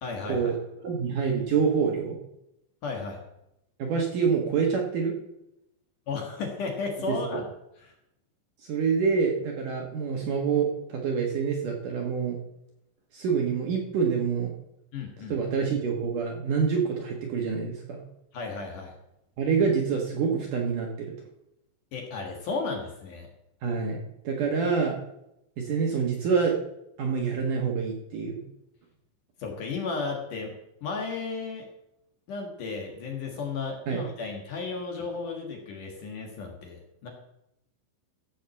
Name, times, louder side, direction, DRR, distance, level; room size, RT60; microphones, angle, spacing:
voice 1, 0.0-0.5 2.8-3.2 6.1-7.5 7.8-7.9 14.9-15.4 18.3-18.9 21.9-23.3 29.4-31.6 32.3-37.1, left 4 dB, 55° left, 1 dB, 2.9 m, -34 dB
voice 2, 0.8-2.2 3.8-5.1 7.1-7.4 8.6-12.4 13.1-14.5 15.3-18.0 19.4-21.1 23.6-24.0 24.2-25.0 25.6-26.6 27.0-28.4 33.9-34.0, right 6 dB, 60° right, 0 dB, 2.5 m, -26 dB
14.5 x 6.3 x 7.1 m, 0.82 s
omnidirectional pair, 5.2 m